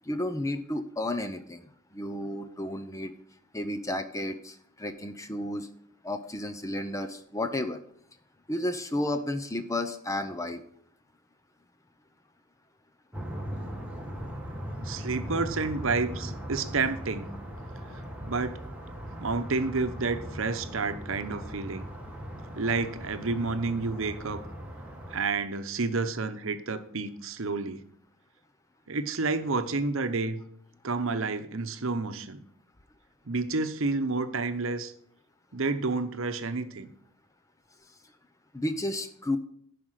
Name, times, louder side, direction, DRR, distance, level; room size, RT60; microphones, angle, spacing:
voice 1, 0.0-3.1 3.5-5.7 6.0-7.8 8.5-10.6 38.5-39.4, left 1 dB, 15° left, 9 dB, 0.6 m, -32 dB
sound 1, 13.1-25.2, equal, 5° right, 1.5 m, -39 dB
voice 2, 14.8-17.3 18.2-18.6 19.2-21.9 22.6-24.4 25.1-27.8 28.9-30.4 30.8-32.4 33.3-34.9 35.5-36.9, right 3 dB, 65° right, 9 dB, 0.9 m, -30 dB
11.0 x 5.1 x 7.5 m, 0.65 s
head